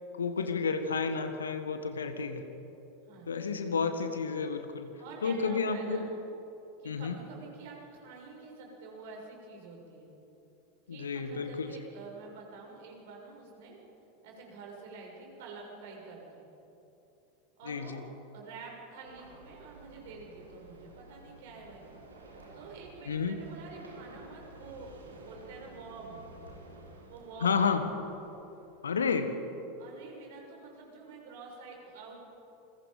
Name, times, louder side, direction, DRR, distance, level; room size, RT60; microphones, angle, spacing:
voice 1, 0.2-2.4 3.3-4.9 5.2-6.1 6.8-7.2 10.9-11.8 17.7-18.0 23.1-23.4 27.4-27.8 28.8-29.3, left 5 dB, 75° left, 8 dB, 1.7 m, -31 dB
voice 2, 5.0-6.0 6.8-10.1 10.9-13.8 14.2-16.4 17.6-18.0 18.3-21.8 22.5-26.2 27.1-27.8 29.8-32.3, right 4 dB, 60° right, -1 dB, 6.6 m, -48 dB
sound 1, 19.0-29.0, right 2 dB, 80° right, 3.9 m, -52 dB
28.5 x 22.5 x 5.3 m, 3.0 s
figure-of-eight pair, 85°, 0 cm